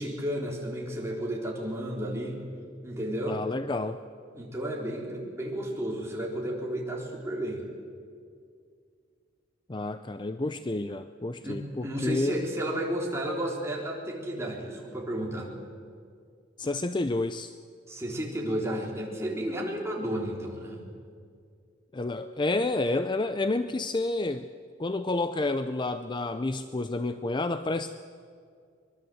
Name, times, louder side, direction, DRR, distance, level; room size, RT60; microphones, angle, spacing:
voice 1, 0.0-2.4 2.8-3.4 4.3-7.6 11.4-15.5 17.9-20.8, right 1 dB, 15° right, -2 dB, 4.0 m, -32 dB
voice 2, 3.3-4.0 9.7-12.4 16.6-17.5 21.9-24.5 24.8-27.9, left 2 dB, 25° left, 11 dB, 0.5 m, -29 dB
23.5 x 22.0 x 7.9 m, 2.2 s
head